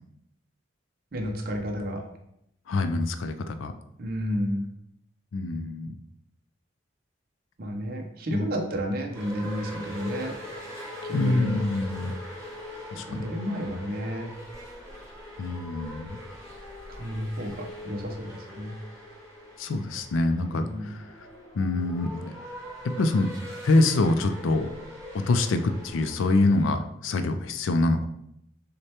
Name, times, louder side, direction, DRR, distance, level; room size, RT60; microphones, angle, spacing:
voice 1, 1.1-2.0 4.0-4.7 7.6-10.4 11.1-11.6 12.9-14.3 16.9-18.7 20.6-20.9, equal, 45° right, 2 dB, 0.6 m, -31 dB
voice 2, 2.7-3.7 5.3-5.9 8.3-8.5 11.1-12.2 12.9-13.3 15.4-16.2 19.6-21.1 21.5-22.3 22.8-23.3 23.6-24.7 25.1-28.0, left 2 dB, 80° left, 8 dB, 0.4 m, -25 dB
sound 1, 9.1-26.7, left 1 dB, 15° right, 1.2 m, -41 dB
6.4 x 2.2 x 2.8 m, 0.77 s
head